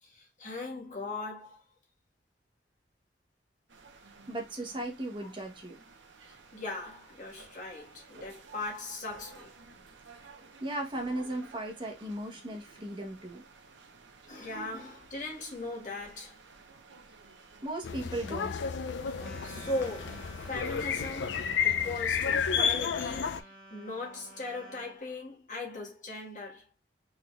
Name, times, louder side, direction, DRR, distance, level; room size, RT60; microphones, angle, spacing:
voice 1, 0.0-1.6 6.2-9.5 14.3-16.4 19.0-26.6, left 2 dB, 45° left, 1.5 m, -39 dB
sound 1, 3.7-21.1, right 3 dB, 90° right, 0.8 m, -54 dB
voice 2, 4.3-5.8 10.2-10.3 10.6-13.4 17.6-18.7, right 1 dB, 25° right, 1.0 m, -37 dB
sound 2, 17.8-23.4, left 7 dB, 80° left, 0.4 m, -31 dB
sound 3, 19.2-25.0, right 1 dB, 5° left, 1.2 m, -51 dB
4.0 x 3.6 x 2.4 m
head